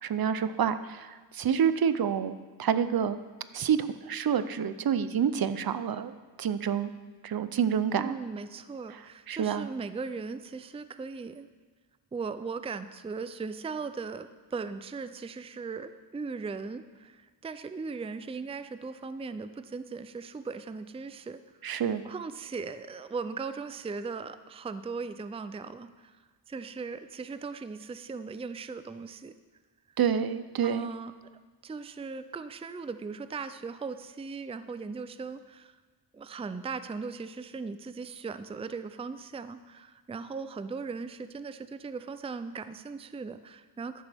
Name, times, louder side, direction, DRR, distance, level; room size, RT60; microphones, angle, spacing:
voice 1, 0.0-3.2 3.5-6.9 7.2-8.2 9.3-9.7 21.6-22.0 30.0-30.9, right 8 dB, 55° right, 12 dB, 0.7 m, -28 dB
voice 2, 8.0-11.5 12.1-21.4 22.0-26.2 26.5-29.3 29.9-30.0 30.6-31.1 31.6-35.8 36.1-44.0, right 4 dB, 15° right, 12 dB, 0.4 m, -38 dB
14.0 x 11.0 x 3.5 m, 1.3 s
wide cardioid pair, 95°, 43 cm